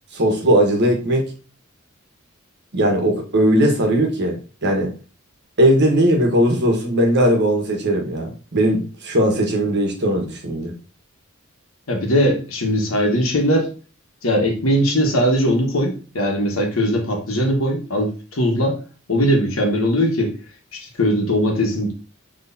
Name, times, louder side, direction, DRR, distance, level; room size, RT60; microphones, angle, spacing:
voice 1, 0.1-1.3 2.7-4.9 5.6-10.7, right 1 dB, 55° right, 2 dB, 1.2 m, -18 dB
voice 2, 11.9-13.7 14.2-18.8 19.1-20.3 20.7-21.9, equal, 80° left, 1 dB, 1.2 m, -20 dB
6.2 x 3.1 x 2.7 m, 0.37 s
head